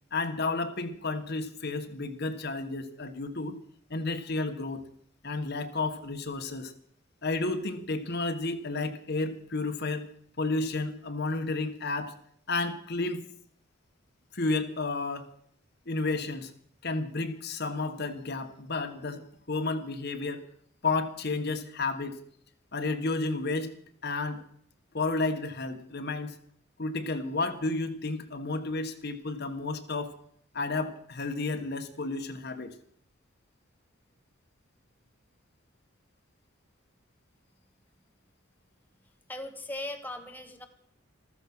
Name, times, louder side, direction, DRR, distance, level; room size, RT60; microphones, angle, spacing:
voice 1, 0.1-3.6 3.9-4.8 5.2-6.7 7.2-10.1 10.4-12.1 12.5-13.2 14.3-15.3 15.9-16.5 16.8-20.4 20.8-22.2 22.7-23.7 24.0-24.4 24.9-26.3 26.8-30.1 30.5-32.7, left 3 dB, 55° left, 7 dB, 1.4 m, -31 dB
voice 2, 39.3-40.7, left 1 dB, 10° left, 4 dB, 1.3 m, -38 dB
14.5 x 14.0 x 6.1 m, 0.65 s
head